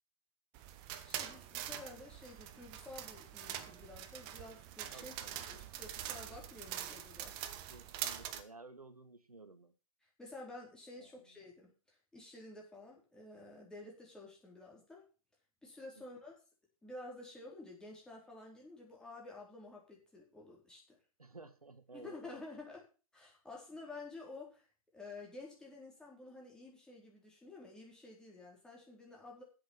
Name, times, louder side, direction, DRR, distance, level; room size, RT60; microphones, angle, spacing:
sound 1, 0.5-8.4, right 11 dB, 25° right, 1.1 m, -44 dB
voice 1, 1.0-5.1 5.5-7.4 10.0-15.0 15.6-16.3 16.8-21.0 21.9-22.8 23.1-24.7 24.9-29.4, left 2 dB, 5° left, -3 dB, 4.4 m, -51 dB
voice 2, 4.9-5.8 7.7-9.7 11.0-11.2 21.2-22.4, right 3 dB, 85° right, 11 dB, 1.6 m, -55 dB
10.5 x 8.1 x 7.3 m, 0.35 s
figure-of-eight pair, 125°, 19 cm